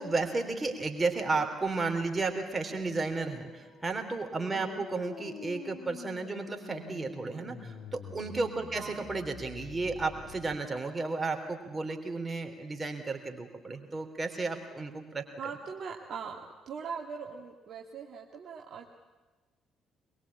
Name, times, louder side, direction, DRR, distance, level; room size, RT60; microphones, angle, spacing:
voice 1, 0.0-15.2, right 3 dB, 25° right, 5 dB, 3.7 m, -33 dB
sound 1, 3.4-10.5, left 6 dB, 55° left, 2.5 m, -47 dB
voice 2, 4.5-4.8 8.7-9.1 15.4-16.4 16.7-18.9, right 6 dB, 50° right, 1 dB, 2.0 m, -41 dB
22.5 x 22.0 x 8.7 m, 1.2 s
figure-of-eight pair, 45°, 0 cm